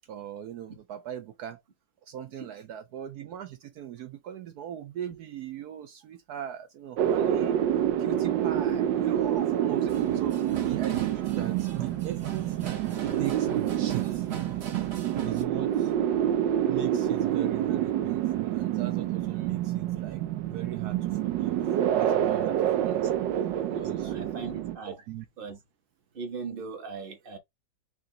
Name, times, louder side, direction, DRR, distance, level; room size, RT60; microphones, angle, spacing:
voice 1, 0.1-1.6 2.0-7.6 8.0-14.3 15.2-15.9 16.7-20.2 20.5-21.6 21.9-23.1 23.8-24.1 24.9-25.2, right 10 dB, 70° right, 1.1 m, -39 dB
sound 1, 7.0-24.8, right 11 dB, 85° right, 1.3 m, -27 dB
sound 2, 9.9-15.4, right 7 dB, 50° right, 0.8 m, -40 dB
voice 2, 22.8-23.1 23.5-25.0 25.4-25.6 26.1-27.4, right 5 dB, 35° right, 1.4 m, -39 dB
4.9 x 2.8 x 3.8 m
omnidirectional pair, 1.9 m